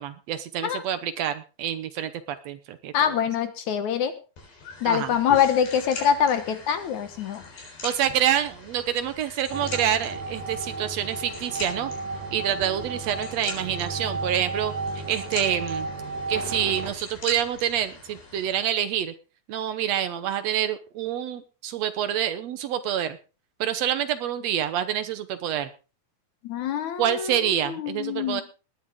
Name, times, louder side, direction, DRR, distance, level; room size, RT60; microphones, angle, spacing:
voice 1, 0.0-2.1 2.4-3.2 4.8-5.1 7.8-11.9 12.3-14.7 15.1-15.9 16.3-19.1 19.5-23.2 23.6-25.7 27.0-28.4, right 10 dB, 75° right, 11 dB, 1.5 m, -27 dB
voice 2, 2.9-4.1 4.8-7.4 26.4-28.4, left 8 dB, 65° left, 10 dB, 2.2 m, -24 dB
sound 1, 4.4-18.6, left 4 dB, 80° left, 5.9 m, -42 dB
sound 2, 9.5-16.9, right 3 dB, 50° right, 2.5 m, -33 dB
20.0 x 10.0 x 3.6 m, 0.33 s
omnidirectional pair, 4.2 m